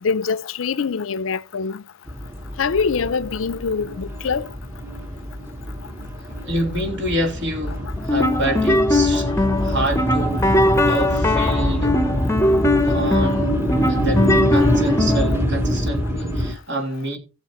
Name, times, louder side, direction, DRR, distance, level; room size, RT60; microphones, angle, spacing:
voice 1, 0.0-1.8 2.6-4.5, left 5 dB, 85° left, 0.5 m, -24 dB
sound 1, 2.1-16.5, equal, 10° right, 1.1 m, -25 dB
voice 2, 6.4-12.0 12.8-13.6 13.9-17.2, right 1 dB, 65° right, 3.1 m, -27 dB
sound 2, 8.0-15.4, left 2 dB, 15° left, 0.8 m, -20 dB
16.5 x 7.2 x 3.0 m
head